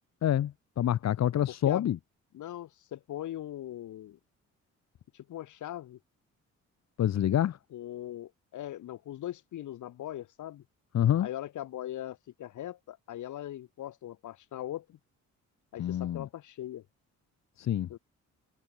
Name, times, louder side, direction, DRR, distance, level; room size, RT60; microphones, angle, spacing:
voice 1, 0.2-2.0 7.0-7.6 10.9-11.3 15.8-16.3 17.6-17.9, left 11 dB, 60° left, 1.5 m, -27 dB
voice 2, 1.5-1.9 2.3-4.2 5.1-6.0 7.7-10.6 11.2-15.0 15.7-16.8 17.9-18.0, left 12 dB, 75° left, 7.0 m, -40 dB
cardioid pair, 90°, 30 cm